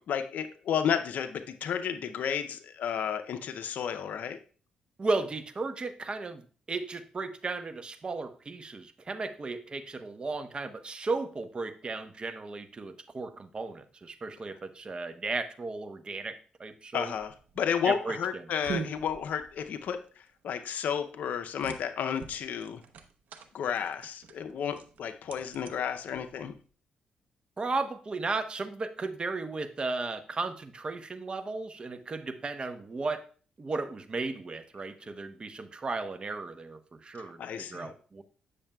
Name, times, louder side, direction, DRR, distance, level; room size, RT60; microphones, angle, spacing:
voice 1, 0.0-4.4 16.9-22.8 23.5-26.5 37.1-37.9, left 8 dB, 70° left, 10 dB, 0.5 m, -32 dB
voice 2, 5.0-6.4 6.7-17.1 17.8-18.4 27.6-33.2 33.6-38.2, right 3 dB, 35° right, 9 dB, 0.8 m, -35 dB
sound 1, 17.1-26.7, right 6 dB, 70° right, 0.8 m, -44 dB
8.7 x 6.5 x 2.3 m, 0.39 s
cardioid pair, 70°, 3 cm